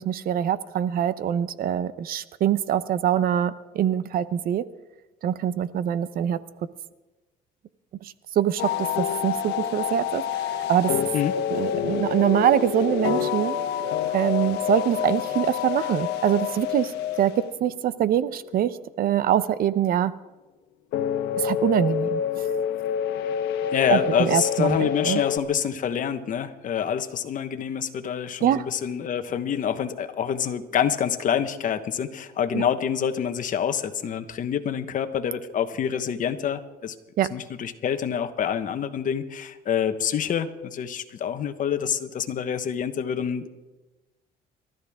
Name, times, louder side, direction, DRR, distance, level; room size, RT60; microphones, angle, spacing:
voice 1, 0.0-4.6 5.2-6.4 8.0-10.9 11.5-13.6 14.1-17.3 17.6-20.1 21.4-22.5 23.9-25.2 28.4-28.6 32.5-32.6 37.2-37.3, right 10 dB, 60° right, 15 dB, 0.8 m, -24 dB
sound 1, 8.6-17.8 20.9-25.4, left 9 dB, 80° left, 1.2 m, -27 dB
voice 2, 23.7-36.9 37.3-43.5, left 8 dB, 50° left, 9 dB, 1.2 m, -27 dB
29.5 x 13.5 x 3.7 m, 1.1 s
cardioid pair, 110°, 17 cm